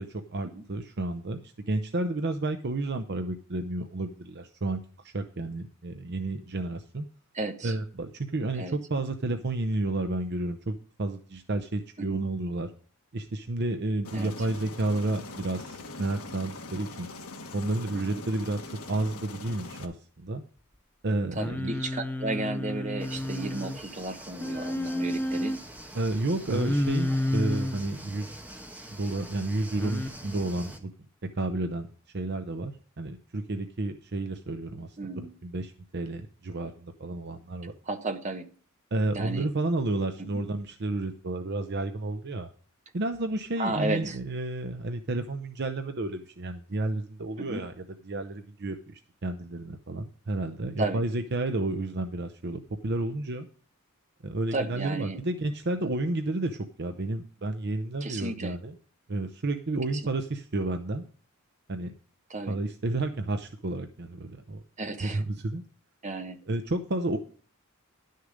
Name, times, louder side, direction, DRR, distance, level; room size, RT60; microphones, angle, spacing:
voice 1, 0.0-7.1 7.6-12.7 13.1-17.1 17.5-18.6 18.9-20.4 21.0-21.7 25.9-28.4 28.9-30.9 31.4-31.9 32.1-34.9 35.4-37.8 38.9-42.5 42.9-47.7 48.0-53.5 54.2-58.7 59.1-61.0 61.7-61.9 62.5-64.6 65.0-65.6 66.5-67.2, right 2 dB, 50° right, 6 dB, 0.7 m, -31 dB
voice 2, 7.3-7.7 8.6-8.8 12.0-12.2 14.1-14.3 17.9-18.2 21.4-25.5 35.0-35.3 37.9-38.5 39.1-39.5 43.6-44.2 47.4-47.6 50.8-51.0 54.5-55.2 58.0-58.6 59.9-60.0 62.3-62.6 64.8-65.2 66.0-66.4, right 2 dB, 30° right, 6 dB, 1.1 m, -33 dB
Aircraft, 14.0-19.8, left 3 dB, 75° left, 1.4 m, -42 dB
Singing, 21.3-23.8 24.4-25.6 26.5-27.8 29.8-30.1, left 1 dB, 10° left, 0.6 m, -30 dB
sound 1, 23.0-30.8, right 1 dB, 10° right, 1.2 m, -45 dB
11.0 x 6.6 x 5.1 m, 0.42 s
head